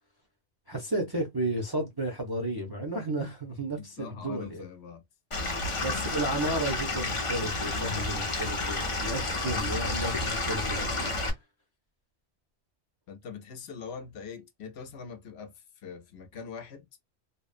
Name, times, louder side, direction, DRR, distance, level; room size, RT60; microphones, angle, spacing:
voice 1, 0.7-4.6 5.8-11.1, right 1 dB, 30° right, 0.5 m, -33 dB
voice 2, 3.8-5.0 5.4-5.6 9.3-9.6 13.1-16.9, left 6 dB, 70° left, 0.8 m, -43 dB
Stream / Liquid, 5.3-11.3, left 2 dB, 35° left, 0.6 m, -31 dB
2.8 x 2.0 x 2.4 m
omnidirectional pair, 1.2 m